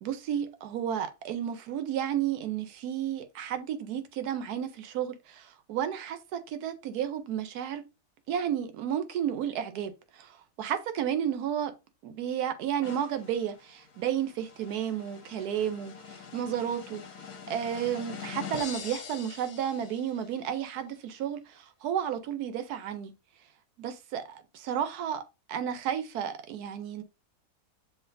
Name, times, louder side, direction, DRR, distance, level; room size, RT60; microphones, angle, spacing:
voice 1, 0.0-7.8 8.3-11.7 12.0-17.0 17.5-23.1 23.8-27.0, right 9 dB, 80° right, 1.2 m, -32 dB
sound 1, 12.8-20.4, left 6 dB, 75° left, 1.3 m, -44 dB
7.3 x 2.8 x 2.5 m
omnidirectional pair, 1.6 m